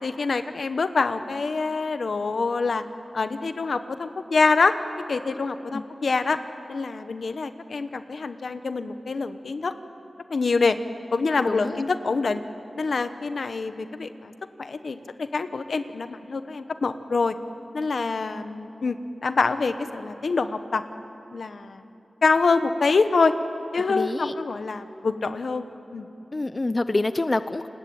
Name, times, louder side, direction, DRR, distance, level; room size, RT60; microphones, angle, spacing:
voice 1, 0.0-2.8 3.1-4.7 5.1-6.4 6.7-9.7 10.3-10.8 11.1-12.4 12.8-14.3 14.6-17.4 17.7-20.8 21.3-21.9 22.2-23.3 23.7-25.6 25.9-26.1, left 4 dB, 75° left, 10 dB, 1.1 m, -25 dB
voice 2, 11.5-11.8 23.9-24.3 26.3-27.7, left 2 dB, 40° left, 12 dB, 0.7 m, -26 dB
29.5 x 19.5 x 8.8 m, 2.9 s
wide cardioid pair, 65°, 0 cm